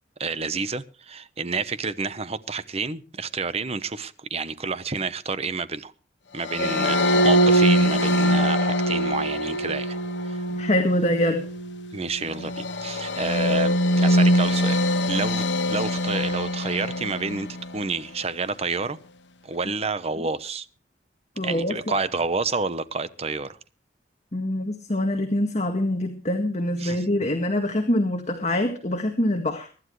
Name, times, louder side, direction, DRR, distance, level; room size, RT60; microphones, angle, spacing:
voice 1, 0.2-5.9 6.3-7.0 7.2-10.0 10.2-10.4 11.9-14.8 15.1-19.0 19.4-20.7 21.4-23.6 26.8-27.0, right 4 dB, 35° right, 1.0 m, -29 dB
sound 1, 6.4-17.8, equal, 85° left, 1.1 m, -23 dB
voice 2, 6.6-6.9 10.5-11.5 21.4-21.8 24.3-29.7, left 1 dB, 40° left, 1.9 m, -25 dB
24.0 x 11.5 x 3.2 m
head